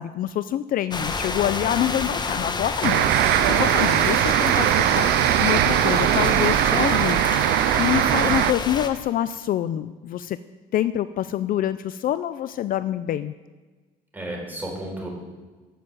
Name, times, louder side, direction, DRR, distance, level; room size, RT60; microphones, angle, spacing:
voice 1, 0.0-10.4 10.7-13.3, left 11 dB, 55° left, 14 dB, 0.5 m, -26 dB
sound 1, 0.9-8.9, left 4 dB, 25° left, 1.1 m, -29 dB
voice 2, 1.6-2.1 14.1-15.1, right 1 dB, 10° right, -2 dB, 5.0 m, -35 dB
sound 2, 2.8-8.5, right 15 dB, 75° right, 0.5 m, -20 dB
13.5 x 6.8 x 7.8 m, 1.3 s
cardioid pair, 110°, 17 cm